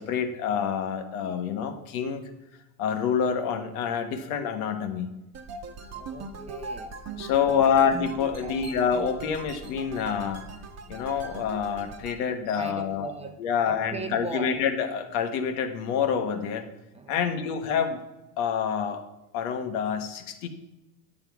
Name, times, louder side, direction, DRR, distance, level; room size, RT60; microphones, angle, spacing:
voice 1, 0.0-2.3 2.8-5.1 7.2-10.5 10.9-13.1 13.4-16.6 17.1-18.0 18.4-19.0 19.3-20.5, left 7 dB, 70° left, 7 dB, 1.4 m, -27 dB
sound 1, 5.3-12.2, right 3 dB, 35° right, 1.2 m, -39 dB
voice 2, 5.8-7.0 7.2-7.9 8.4-8.7 12.5-14.6 16.9-17.5, right 3 dB, 15° right, 5 dB, 0.9 m, -40 dB
10.5 x 7.4 x 4.6 m, 0.99 s
supercardioid pair, 115°, 43 cm